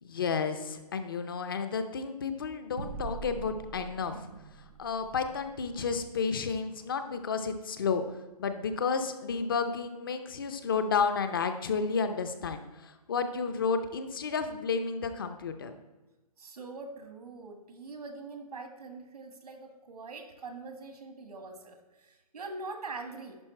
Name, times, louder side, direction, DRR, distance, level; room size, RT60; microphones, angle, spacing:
voice 1, 0.0-4.2 4.6-8.0 8.4-15.7, left 5 dB, 35° left, 8 dB, 0.6 m, -31 dB
sound 1, 2.8-7.6, right 5 dB, 20° right, 0.4 m, -45 dB
voice 2, 16.4-23.4, right 3 dB, 85° right, 6 dB, 1.7 m, -43 dB
10.5 x 4.7 x 4.4 m, 1.1 s
hypercardioid pair, 170°, 20 cm